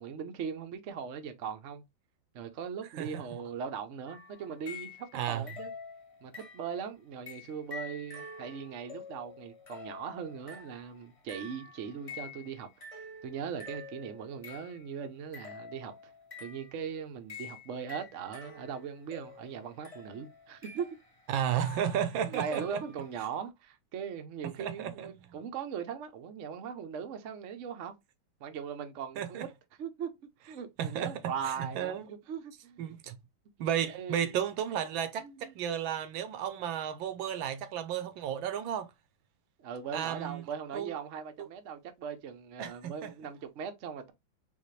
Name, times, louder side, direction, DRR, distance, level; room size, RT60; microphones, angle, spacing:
voice 1, 0.0-1.8 2.3-5.7 6.2-12.7 13.2-16.1 16.4-20.9 22.3-27.9 28.4-29.5 29.8-30.1 30.4-32.9 33.6-34.4 35.2-35.6 39.6-44.1, right 7 dB, 60° right, 0.7 m, -39 dB
sound 1, 4.1-5.2 5.5-6.8 7.3-14.9 15.3-16.8 17.3-23.1, left 4 dB, 40° left, 0.4 m, -48 dB
voice 2, 5.1-5.4 21.3-22.8 24.6-25.1 29.2-29.4 30.8-31.1 31.6-32.0 32.8-33.2 33.6-38.9 39.9-40.4 40.7-40.9 41.4-41.5 42.6-43.1, right 9 dB, 80° right, 1.4 m, -33 dB
4.1 x 3.6 x 3.2 m
omnidirectional pair, 2.2 m